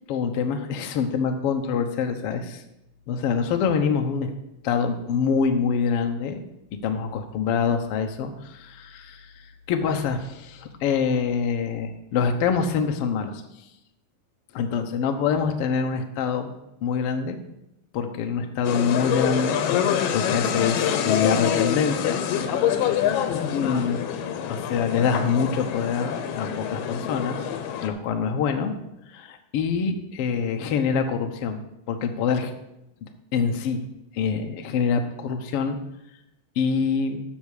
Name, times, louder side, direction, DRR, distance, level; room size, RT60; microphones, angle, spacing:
voice 1, 0.1-2.6 3.1-4.3 4.6-6.4 6.8-9.3 9.7-13.4 14.5-17.4 17.9-19.6 20.1-22.2 22.7-23.0 23.5-24.0 24.5-27.4 27.8-28.7 29.1-31.6 31.9-32.5 33.3-33.8 34.1-35.8 36.6-37.2, left 6 dB, 70° left, 5 dB, 1.4 m, -25 dB
sound 1, 18.7-27.9, left 9 dB, 90° left, 2.6 m, -26 dB
10.5 x 6.5 x 6.5 m, 0.86 s
omnidirectional pair, 3.8 m